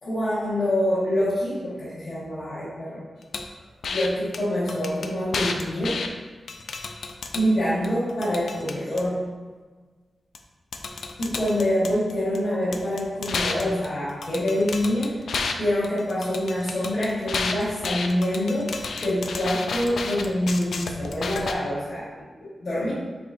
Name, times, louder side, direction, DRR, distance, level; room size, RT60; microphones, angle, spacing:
voice 1, 0.0-3.0 3.9-6.0 7.3-9.2 11.2-15.2 15.6-22.9, left 1 dB, 55° left, -10 dB, 1.3 m, -26 dB
sound 1, 3.3-3.5 3.8-4.1 4.3-4.4 4.7-6.1 6.5-7.5 7.8-9.0 10.4-10.5 10.7-12.4 12.7-15.5 15.8-21.5, left 4 dB, 85° left, 0.3 m, -31 dB
5.0 x 3.5 x 2.5 m, 1.4 s
wide cardioid pair, 155°, 0 cm